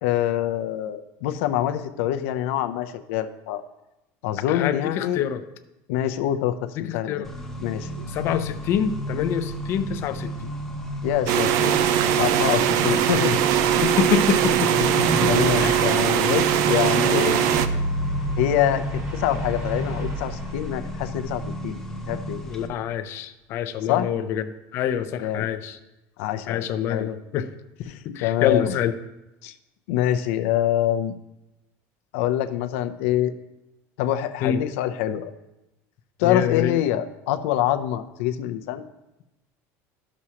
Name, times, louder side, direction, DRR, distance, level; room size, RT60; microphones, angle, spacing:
voice 1, 0.0-3.6 4.2-5.2 5.9-7.3 7.6-8.0 11.0-13.4 15.2-17.4 18.4-21.8 22.1-22.4 23.8-24.1 25.2-25.5 26.2-27.1 27.9-28.7 29.4-29.5 29.9-31.2 32.1-33.3 34.0-35.3 36.2-38.8, left 12 dB, 85° left, 8 dB, 0.6 m, -25 dB
voice 2, 4.5-5.4 7.1-7.3 8.1-10.5 13.8-15.1 15.6-15.9 17.3-17.4 22.5-24.4 24.7-25.8 26.5-27.5 28.0-28.9 34.4-34.6 36.2-36.7, left 9 dB, 35° left, 10 dB, 0.4 m, -26 dB
Accelerating revving vroom, 7.2-22.7, equal, 5° left, 0.7 m, -33 dB
sound 1, 11.3-17.7, right 9 dB, 50° right, 0.4 m, -21 dB
sound 2, 16.8-22.1, equal, 30° right, 1.3 m, -31 dB
12.5 x 6.1 x 2.9 m, 0.95 s
cardioid pair, 180°, 7 cm